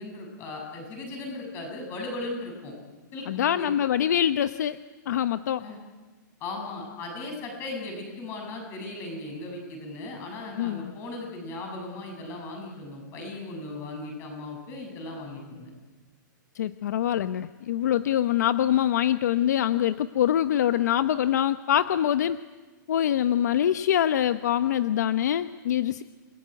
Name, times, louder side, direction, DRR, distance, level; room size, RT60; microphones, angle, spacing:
voice 1, 0.0-2.7 3.1-3.7 5.6-5.8 6.4-15.7, left 2 dB, 20° left, 2 dB, 7.5 m, -37 dB
voice 2, 3.3-4.8 5.1-5.7 10.6-10.9 16.5-22.4 22.9-26.0, left 10 dB, 60° left, 11 dB, 0.9 m, -24 dB
29.5 x 21.0 x 9.4 m, 1.3 s
hypercardioid pair, 170°, 11 cm